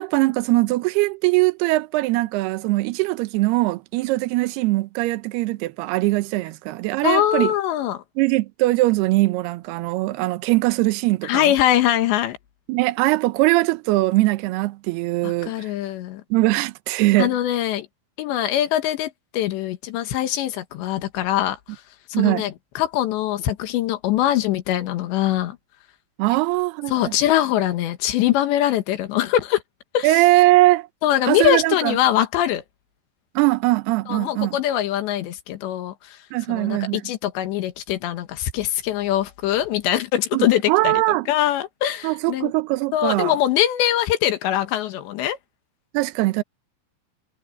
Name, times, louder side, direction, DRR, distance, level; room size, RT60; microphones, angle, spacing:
voice 1, 0.0-7.5 8.2-11.5 12.7-15.7 16.3-17.3 22.1-22.5 26.2-27.1 30.0-30.9 31.3-32.0 33.4-34.6 36.3-37.0 40.3-41.3 42.0-43.4 45.9-46.4, right 20 dB, 80° right, 2.5 m, -21 dB
voice 2, 7.0-8.0 11.2-12.4 15.2-16.2 17.2-17.9 18.2-21.6 22.1-25.6 26.9-29.6 29.9-30.2 31.0-32.6 34.1-36.2 36.5-42.5 42.9-45.4, left 12 dB, 75° left, 3.5 m, -22 dB
omnidirectional pair, 5.4 m